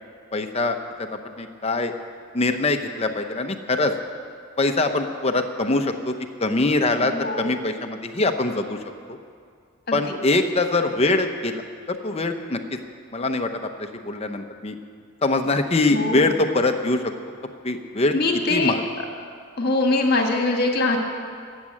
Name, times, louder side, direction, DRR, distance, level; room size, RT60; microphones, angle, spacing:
voice 1, 0.3-1.9 2.3-3.9 4.6-6.1 6.4-8.8 9.1-9.2 9.9-12.6 13.1-14.8 15.2-17.1 17.6-18.1 18.5-18.8, left 2 dB, 30° left, 6 dB, 0.8 m, -23 dB
voice 2, 7.0-7.4 9.9-10.0 15.9-16.3 18.1-18.7 19.6-21.0, left 2 dB, 45° left, 2 dB, 1.6 m, -22 dB
15.0 x 7.4 x 8.7 m, 2.2 s
head